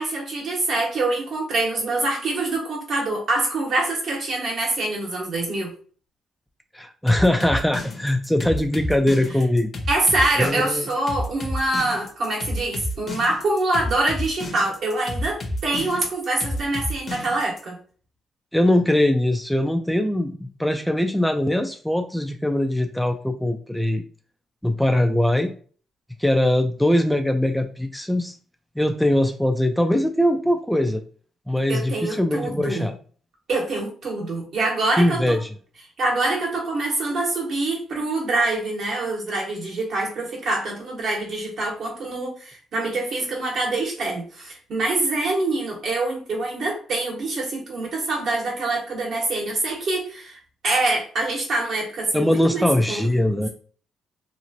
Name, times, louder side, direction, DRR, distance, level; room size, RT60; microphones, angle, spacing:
voice 1, 0.0-5.7 9.9-17.8 31.7-32.9 33.5-35.4 36.0-53.1, right 2 dB, 60° right, -1 dB, 1.3 m, -25 dB
voice 2, 6.7-9.7 10.4-10.9 18.5-24.0 24.6-25.5 26.2-28.3 28.8-31.0 31.5-33.0 35.0-35.5 52.1-53.5, left 1 dB, 5° left, 5 dB, 0.3 m, -21 dB
sound 1, 7.1-17.6, left 1 dB, 40° left, 0.7 m, -30 dB
2.9 x 2.5 x 2.7 m, 0.43 s
cardioid pair, 90°, 0 cm